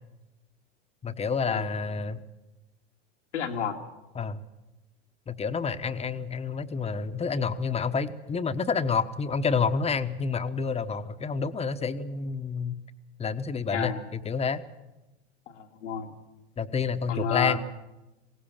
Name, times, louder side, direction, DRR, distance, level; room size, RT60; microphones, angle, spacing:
voice 1, 1.0-2.2 4.1-4.4 5.3-12.8 13.2-14.6 16.6-17.6, left 5 dB, 20° left, 10 dB, 1.0 m, -29 dB
voice 2, 3.3-3.8 13.7-14.0 15.5-16.1 17.1-17.6, left 7 dB, 90° left, 3 dB, 2.3 m, -31 dB
21.5 x 17.5 x 7.3 m, 1.0 s
hypercardioid pair, 105°, 35 cm